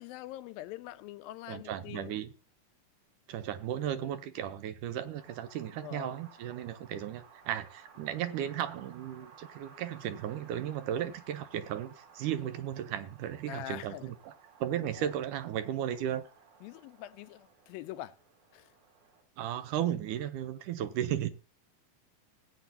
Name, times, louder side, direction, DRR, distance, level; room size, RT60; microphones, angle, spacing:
voice 1, 0.0-2.1 5.8-6.1 13.5-14.1 15.0-15.1 16.6-18.2 18.5-18.7, left 14 dB, 85° left, 2.5 m, -44 dB
voice 2, 1.5-2.3 3.3-14.3 14.6-16.3 19.4-21.3, right 10 dB, 75° right, 2.1 m, -35 dB
Wind, 5.2-19.2, right 6 dB, 55° right, 4.1 m, -58 dB
18.5 x 8.4 x 2.8 m
omnidirectional pair, 4.0 m